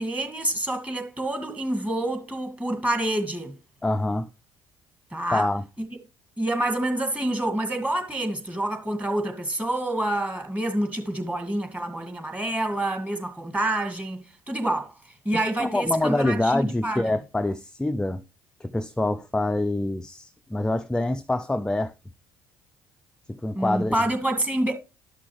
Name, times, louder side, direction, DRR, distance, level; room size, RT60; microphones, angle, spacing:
voice 1, 0.0-3.5 5.1-5.5 5.8-5.9 6.4-14.9 15.3-17.1 23.5-24.7, right 1 dB, 15° right, 2.0 m, -27 dB
voice 2, 3.8-4.3 5.3-5.6 15.6-18.2 18.6-21.9 23.3-24.0, left 2 dB, 5° left, 0.4 m, -25 dB
11.0 x 6.1 x 3.2 m
hypercardioid pair, 60°, 10 cm